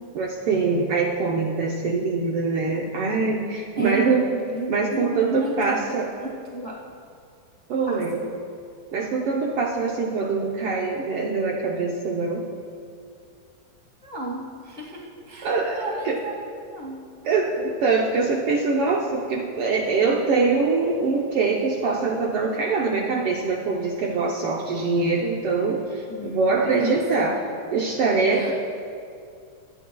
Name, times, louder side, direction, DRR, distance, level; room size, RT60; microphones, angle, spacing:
voice 1, 0.1-4.3 4.7-6.1 7.7-8.2 8.9-12.5 15.4-16.2 17.2-27.4 27.7-28.5, right 4 dB, 75° right, -1 dB, 1.3 m, -23 dB
voice 2, 3.8-5.8 6.2-6.8 7.9-8.3 14.0-17.0 26.1-27.1 28.3-28.5, right 1 dB, 85° left, -3 dB, 0.4 m, -33 dB
24.0 x 10.0 x 2.3 m, 2.3 s
omnidirectional pair, 3.5 m